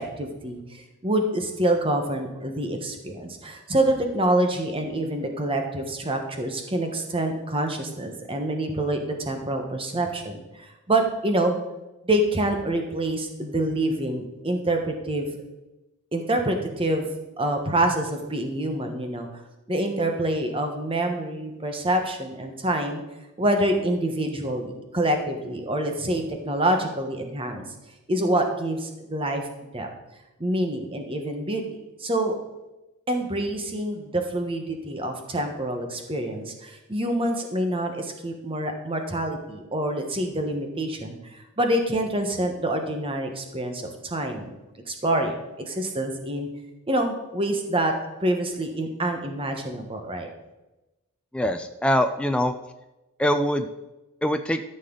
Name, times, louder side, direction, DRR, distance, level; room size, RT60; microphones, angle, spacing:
voice 1, 0.0-11.6 12.0-15.4 16.1-19.3 19.7-23.0 23.4-27.6 28.1-29.5 29.7-29.9 30.4-31.6 32.0-32.4 33.1-44.5 44.9-45.3 45.7-46.5 46.9-47.9 48.2-50.3, right 1 dB, 25° right, 4 dB, 1.2 m, -26 dB
voice 2, 51.3-52.5 53.2-53.7 54.2-54.6, equal, 5° left, 6 dB, 0.4 m, -23 dB
13.5 x 6.7 x 3.9 m, 1.0 s
head